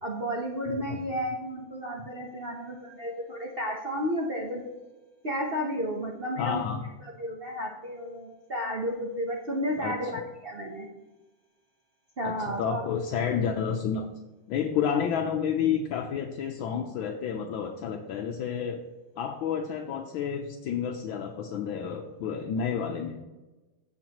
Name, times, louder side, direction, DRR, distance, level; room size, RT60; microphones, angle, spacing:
voice 1, 0.0-4.7 5.2-6.7 7.0-10.9 12.2-12.8 14.9-15.0, equal, 55° right, 0 dB, 0.6 m, -32 dB
voice 2, 6.4-6.8 9.8-9.9 12.2-14.1 14.5-18.8 19.2-23.2, left 7 dB, 75° left, 4 dB, 1.4 m, -30 dB
15.5 x 6.0 x 2.9 m, 1.1 s
omnidirectional pair, 2.4 m